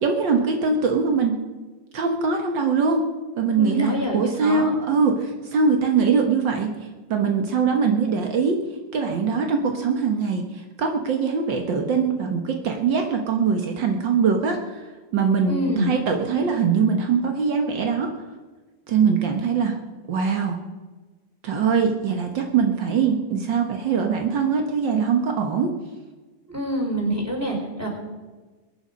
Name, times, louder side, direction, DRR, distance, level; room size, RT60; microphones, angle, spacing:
voice 1, 0.0-1.4 1.9-3.1 3.4-6.7 7.1-8.6 8.9-14.8 15.1-18.1 18.9-19.8 20.1-20.6 21.4-25.7, right 5 dB, 85° right, 3 dB, 1.0 m, -22 dB
voice 2, 3.5-4.7 15.5-15.9 26.5-27.9, right 1 dB, 5° right, -1 dB, 3.8 m, -26 dB
23.0 x 9.7 x 5.2 m, 1.3 s
omnidirectional pair, 4.0 m